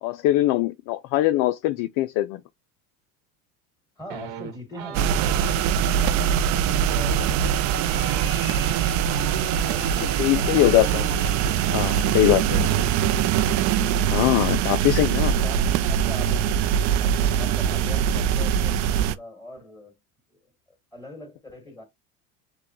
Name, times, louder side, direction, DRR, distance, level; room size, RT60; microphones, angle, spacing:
voice 1, 0.0-2.4 10.2-12.6 14.1-15.3, left 15 dB, 50° left, 0.5 m, -22 dB
voice 2, 4.0-7.5 7.8-8.7 9.3-10.9 15.4-16.6 17.0-20.0 20.3-20.5 20.9-21.8, left 1 dB, 10° left, 2.4 m, -43 dB
sound 1, 4.1-5.6 6.8-11.2 12.1-12.2 12.4-14.1 14.4-14.7 14.9-15.4, right 9 dB, 65° right, 1.1 m, -38 dB
sound 2, 4.9-19.1, right 9 dB, 45° right, 0.5 m, -22 dB
sound 3, 7.8-12.6, left 8 dB, 30° left, 0.9 m, -44 dB
6.5 x 2.3 x 3.1 m
hypercardioid pair, 95°, 42 cm